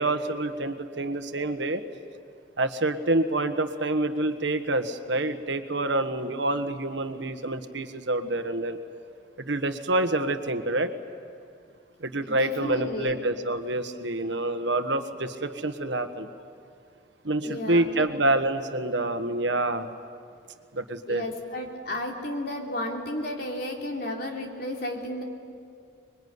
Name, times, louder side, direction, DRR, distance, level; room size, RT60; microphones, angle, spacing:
voice 1, 0.0-1.8 2.6-8.8 9.4-10.9 12.0-16.3 17.2-19.9 20.7-21.2, right 2 dB, 75° right, 8 dB, 1.4 m, -27 dB
voice 2, 12.2-13.2 17.4-18.1 21.1-25.2, left 1 dB, 55° left, 1 dB, 3.4 m, -33 dB
26.0 x 22.5 x 9.6 m, 2.3 s
head